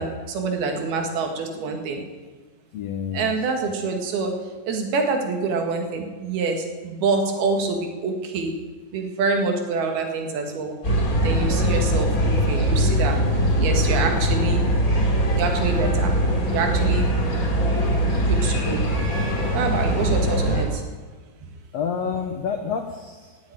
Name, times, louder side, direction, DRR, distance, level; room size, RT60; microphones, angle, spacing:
voice 1, 0.0-2.0 3.1-4.4 4.7-8.5 8.9-10.7 11.2-13.2 13.6-14.6 15.4-16.1 16.5-17.1 18.3-18.9 19.5-20.8, right 4 dB, 75° right, 3 dB, 3.7 m, -26 dB
voice 2, 2.7-3.3 20.1-20.3 21.7-23.4, left 6 dB, 85° left, 5 dB, 1.4 m, -29 dB
sound 1, 10.8-20.6, equal, 25° left, 3.1 m, -21 dB
17.0 x 7.9 x 8.9 m, 1.4 s
omnidirectional pair, 4.4 m